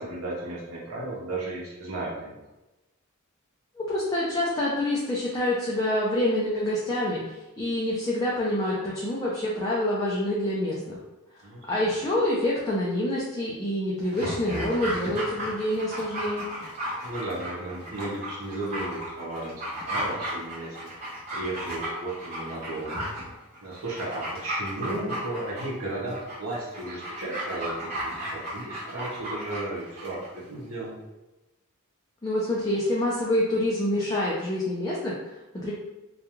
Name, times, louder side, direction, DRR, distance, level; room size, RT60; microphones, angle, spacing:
voice 1, 0.0-2.4 11.4-11.6 17.0-20.7 21.0-23.0 23.6-30.9, right 2 dB, 65° right, -4 dB, 0.8 m, -34 dB
voice 2, 3.8-11.0 11.7-16.4 32.2-35.7, left 1 dB, 15° left, -6 dB, 0.4 m, -27 dB
Dog, 14.0-30.3 30.6-30.7, right 1 dB, 30° right, 0.9 m, -35 dB
2.4 x 2.2 x 2.9 m, 1.0 s
head